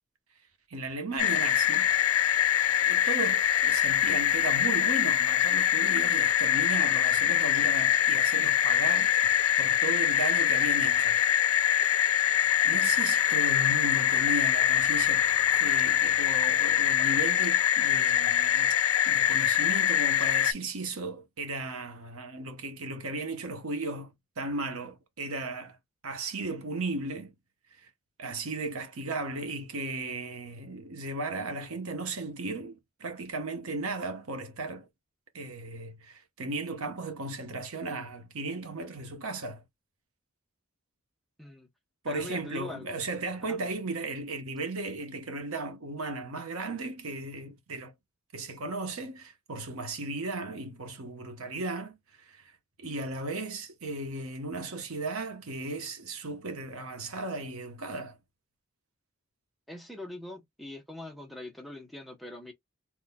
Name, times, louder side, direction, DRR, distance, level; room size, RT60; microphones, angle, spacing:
voice 1, 0.7-1.9 2.9-11.2 11.7-11.8 12.6-18.7 19.0-25.8 26.0-27.3 27.8-27.9 28.2-34.9 35.3-39.6 42.0-47.9 48.3-52.5 52.8-58.2, right 2 dB, 75° right, 1.0 m, -36 dB
sound 1, 1.2-20.5, left 10 dB, 75° left, 0.5 m, -24 dB
voice 2, 42.1-43.0 43.5-43.6 59.7-62.5, left 2 dB, ahead, 0.8 m, -42 dB
3.8 x 3.0 x 2.2 m
head